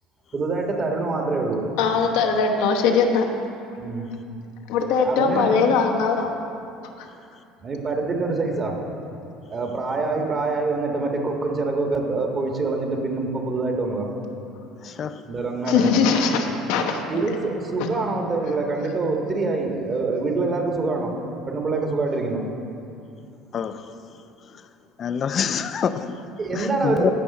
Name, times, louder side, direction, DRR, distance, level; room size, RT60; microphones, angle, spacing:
voice 1, 0.3-1.6 3.8-4.1 5.0-5.6 7.6-8.8 9.5-14.1 15.3-16.0 17.1-21.2 21.5-22.4 26.4-27.1, right 3 dB, 40° right, 1.6 m, -25 dB
voice 2, 1.8-3.2 4.7-6.3 7.0-7.1 15.7-17.0, left 5 dB, 70° left, 1.0 m, -20 dB
voice 3, 14.8-15.2 17.1-17.3 23.5-23.9 24.5-24.6 25.0-27.1, left 7 dB, 45° left, 0.5 m, -27 dB
16.0 x 5.6 x 4.1 m
hypercardioid pair, 65°, 0 cm